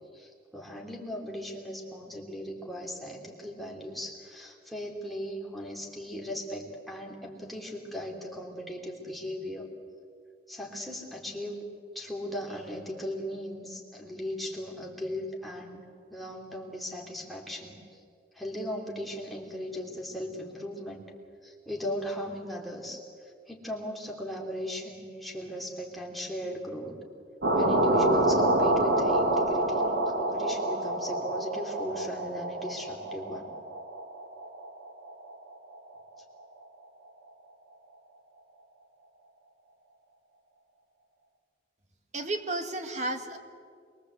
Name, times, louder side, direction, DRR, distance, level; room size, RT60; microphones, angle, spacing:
voice 1, 0.1-9.7 10.5-11.6 11.9-15.8 16.1-18.0 18.3-21.1 21.4-27.0 27.5-33.5, equal, ahead, -1 dB, 3.2 m, -37 dB
sound 1, 27.4-35.4, right 1 dB, 65° right, 2.2 m, -27 dB
voice 2, 42.1-43.4, right 2 dB, 40° right, 6 dB, 2.1 m, -32 dB
26.5 x 22.5 x 8.2 m, 2.2 s
head